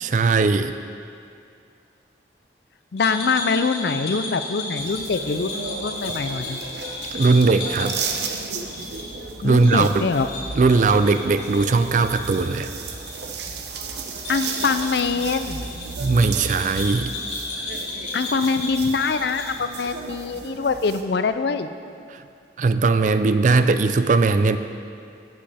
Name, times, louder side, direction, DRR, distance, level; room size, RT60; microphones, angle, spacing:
voice 1, 0.0-0.7 7.1-8.0 9.4-10.1 10.6-12.7 16.0-17.1 22.6-24.6, right 3 dB, 45° right, 10 dB, 0.3 m, -19 dB
voice 2, 2.9-6.6 9.4-10.3 14.3-15.6 18.1-21.7, left 4 dB, 65° left, 10 dB, 0.5 m, -24 dB
sound 1, 3.0-13.1 13.4-13.5 14.1-19.9, left 2 dB, 85° left, 2.6 m, -34 dB
sound 2, 4.8-21.0, right 4 dB, 70° right, 0.8 m, -34 dB
15.0 x 7.6 x 3.5 m, 2.4 s
head